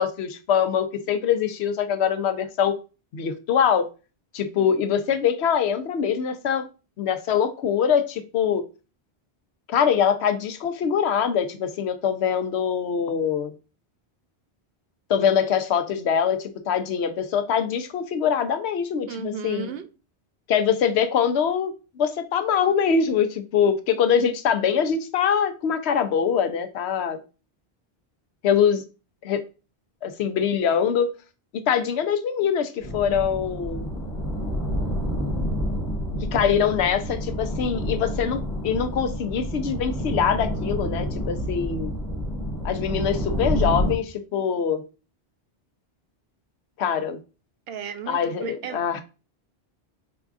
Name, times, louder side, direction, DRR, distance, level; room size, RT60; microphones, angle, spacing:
voice 1, 0.0-2.8 3.1-3.9 4.3-6.7 7.0-8.6 9.7-13.5 15.1-19.7 20.5-27.2 28.4-28.8 29.2-29.4 30.0-31.1 31.7-33.9 36.3-41.9 42.6-44.8 46.8-47.2 48.1-49.0, left 7 dB, 85° left, 0.9 m, -23 dB
voice 2, 19.1-19.9 47.7-49.0, right 7 dB, 70° right, 0.8 m, -34 dB
sound 1, 32.8-43.9, equal, 30° left, 1.6 m, -28 dB
4.8 x 3.5 x 2.4 m
omnidirectional pair, 1.1 m